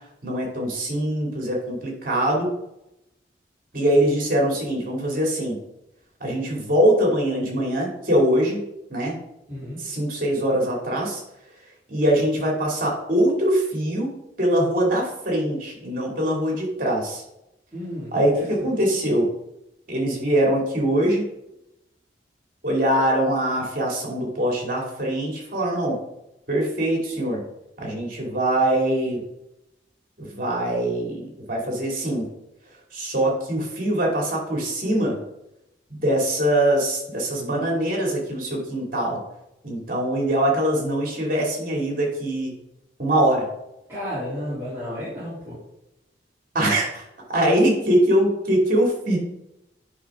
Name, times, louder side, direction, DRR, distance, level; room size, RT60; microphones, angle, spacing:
voice 1, 0.2-2.5 3.7-5.6 6.2-8.6 8.9-9.2 9.8-11.2 11.9-17.2 18.1-19.3 19.9-21.3 22.6-26.0 26.5-27.5 27.8-29.2 30.2-32.3 32.9-35.2 35.9-39.2 39.6-42.5 43.0-43.5 46.5-49.2, right 1 dB, 50° right, -1 dB, 2.7 m, -23 dB
voice 2, 9.5-9.8 17.7-18.7 43.9-45.6, equal, 15° right, -13 dB, 3.2 m, -32 dB
9.6 x 5.6 x 3.7 m, 0.88 s
head